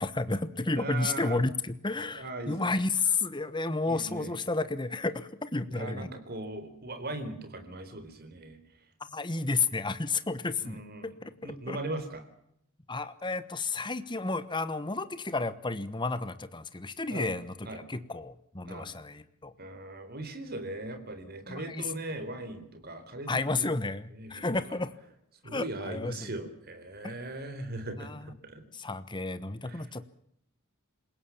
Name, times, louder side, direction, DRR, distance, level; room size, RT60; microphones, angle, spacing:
voice 1, 0.0-6.1 9.1-11.8 12.9-19.5 21.5-21.9 23.3-24.9 25.5-26.3 27.0-27.1 28.0-28.3 28.7-30.0, left 3 dB, 20° left, 13 dB, 1.1 m, -32 dB
voice 2, 0.8-1.4 2.1-2.8 3.9-4.3 5.7-8.6 10.6-12.2 17.1-17.3 17.6-17.8 18.6-18.9 19.6-23.7 24.2-24.4 24.7-24.8 25.4-28.6 29.6-29.9, right 2 dB, 45° right, 8 dB, 4.1 m, -39 dB
27.5 x 17.0 x 7.3 m, 0.72 s
head